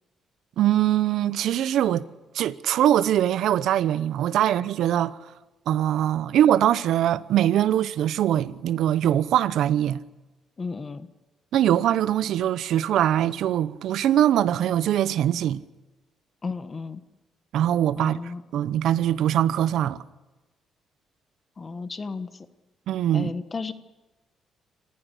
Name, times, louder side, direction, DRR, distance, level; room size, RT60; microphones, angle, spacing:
voice 1, 0.6-2.0 2.3-5.2 5.7-10.0 11.5-15.6 17.5-18.2 18.5-20.0 22.9-23.3, right 11 dB, 80° right, 0.8 m, -22 dB
voice 2, 10.6-11.1 16.4-17.0 18.0-18.4 21.6-22.5 23.1-23.7, left 4 dB, 35° left, 1.3 m, -33 dB
27.0 x 15.0 x 8.3 m
cardioid pair, 90°, 0 cm